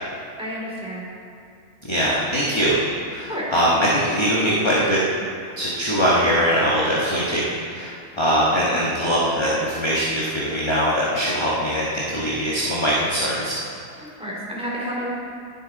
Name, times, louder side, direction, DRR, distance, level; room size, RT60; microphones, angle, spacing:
voice 1, 0.4-1.0 3.3-3.5 14.0-15.1, equal, 5° right, -6 dB, 3.0 m, -30 dB
voice 2, 1.9-2.8 3.1-5.0 5.6-7.4 7.7-13.5, equal, 20° left, -7 dB, 1.4 m, -21 dB
19.0 x 7.1 x 4.1 m, 2.5 s
omnidirectional pair, 1.5 m